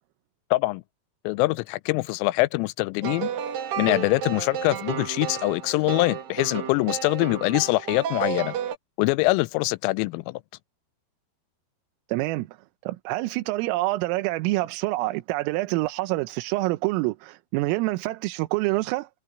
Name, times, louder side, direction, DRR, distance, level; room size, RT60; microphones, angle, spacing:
voice 1, 0.5-0.8 1.2-3.3 3.8-8.5 9.0-10.4, left 23 dB, 90° left, 3.2 m, -24 dB
sound 1, 3.0-8.8, right 9 dB, 55° right, 2.8 m, -32 dB
voice 2, 12.1-12.5 12.9-19.1, right 20 dB, 85° right, 3.5 m, -26 dB
omnidirectional pair, 5.8 m